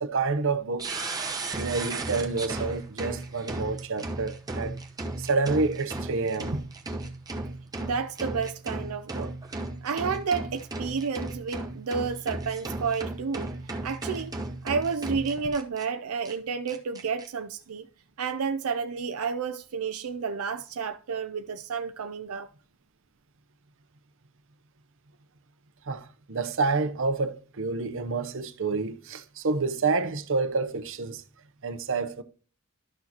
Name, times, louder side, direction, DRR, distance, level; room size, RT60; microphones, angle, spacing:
voice 1, 0.0-0.9 1.5-4.8 5.2-6.6 25.9-31.2 31.6-32.2, right 4 dB, 60° right, 0.8 m, -28 dB
sound 1, 0.8-15.8 16.2-16.3 16.7-17.3, right 2 dB, 15° right, 0.9 m, -35 dB
voice 2, 7.8-9.3 9.8-13.5 13.8-14.4 14.6-17.9 18.2-22.5, right 5 dB, 85° right, 0.5 m, -31 dB
12.0 x 6.3 x 2.9 m
head